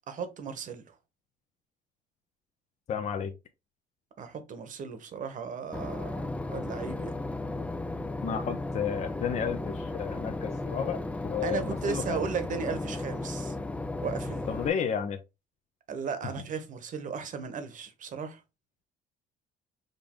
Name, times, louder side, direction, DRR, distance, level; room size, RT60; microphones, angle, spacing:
voice 1, 0.1-0.8 4.2-6.2 6.5-7.1 11.4-13.6 14.0-14.5 15.9-18.4, right 6 dB, 50° right, 1.1 m, -35 dB
voice 2, 2.9-3.3 8.2-12.2 14.5-15.2, left 7 dB, 40° left, 0.6 m, -32 dB
Boat Water vehicle / Engine, 5.7-14.7, left 2 dB, 10° left, 0.3 m, -35 dB
5.2 x 2.6 x 3.6 m
cardioid pair, 110°, 17 cm